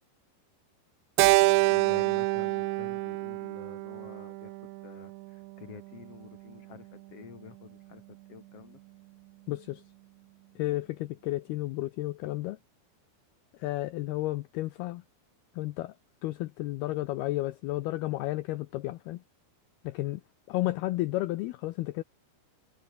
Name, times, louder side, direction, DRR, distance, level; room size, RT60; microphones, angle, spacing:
Keyboard (musical), 1.2-5.6, right 23 dB, 80° right, 2.7 m, -27 dB
voice 1, 1.7-8.8, left 8 dB, 50° left, 1.9 m, -49 dB
voice 2, 9.5-9.8 10.6-12.6 13.5-15.0 15.6-15.9 16.2-19.2 19.8-20.2 20.5-22.0, left 17 dB, 85° left, 2.3 m, -32 dB
omnidirectional pair, 5.4 m